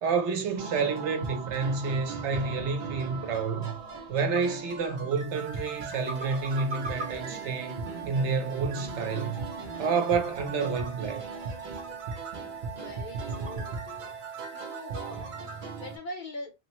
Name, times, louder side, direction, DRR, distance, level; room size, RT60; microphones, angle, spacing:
voice 1, 0.0-3.8 4.1-7.8 8.1-9.5 9.8-11.2, right 5 dB, 80° right, 1.0 m, -29 dB
sound 1, 0.6-16.0, right 4 dB, 50° right, 0.8 m, -38 dB
sound 2, 3.3-13.6, right 1 dB, 10° right, 0.8 m, -47 dB
voice 2, 12.6-14.1 14.5-16.5, left 1 dB, 50° left, 0.8 m, -43 dB
3.3 x 2.1 x 2.9 m
omnidirectional pair, 1.2 m